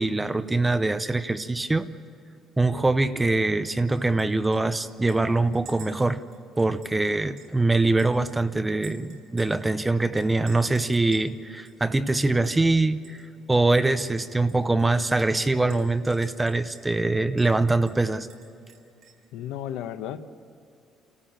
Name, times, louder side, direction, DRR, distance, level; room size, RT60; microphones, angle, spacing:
voice 1, 0.0-1.9 2.6-6.2 6.6-13.2 13.5-18.3, right 2 dB, 10° right, 11 dB, 0.6 m, -23 dB
Chink clink, 3.9-4.3 4.5-4.6 5.1-7.6 8.0-9.7 10.2-11.3 11.6-11.7 12.1-12.7 13.0-13.2 13.5-13.6 14.2-17.0 17.4-17.5 17.9-19.2, right 5 dB, 55° right, 4.3 m, -52 dB
voice 2, 19.3-20.2, left 11 dB, 85° left, 9 dB, 1.1 m, -33 dB
27.5 x 14.0 x 8.8 m, 2.7 s
cardioid pair, 180°, 0 cm